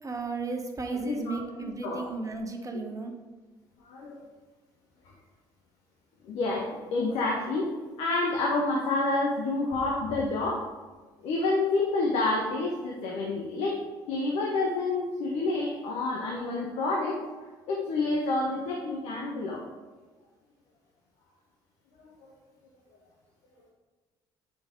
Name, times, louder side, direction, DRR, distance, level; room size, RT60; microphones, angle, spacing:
voice 1, 0.0-3.2, right 3 dB, 30° right, 3 dB, 1.5 m, -34 dB
voice 2, 1.0-1.4 1.8-2.0 3.8-4.2 6.2-7.7 8.0-10.7 11.2-13.8 14.1-19.6 22.0-22.1, left 2 dB, 70° left, -1 dB, 1.2 m, -28 dB
8.8 x 5.3 x 3.9 m, 1.3 s
hypercardioid pair, 60°, 11 cm